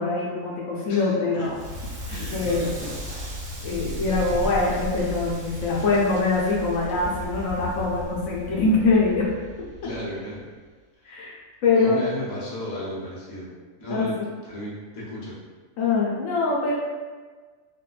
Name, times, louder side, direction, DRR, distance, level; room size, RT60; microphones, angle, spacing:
voice 1, 0.0-1.6 2.3-2.6 3.6-9.3 11.1-11.9 13.9-14.3 15.8-16.7, left 3 dB, 75° left, -4 dB, 1.0 m, -23 dB
voice 2, 0.9-1.5 2.1-3.0 9.8-10.4 11.0-11.3 11.7-13.5 13.8-14.2 14.4-15.4, left 1 dB, 40° left, -7 dB, 0.8 m, -34 dB
Crackle, 1.4-10.4, equal, 85° right, 1.3 m, -35 dB
4.0 x 2.1 x 2.3 m, 1.4 s
omnidirectional pair, 1.4 m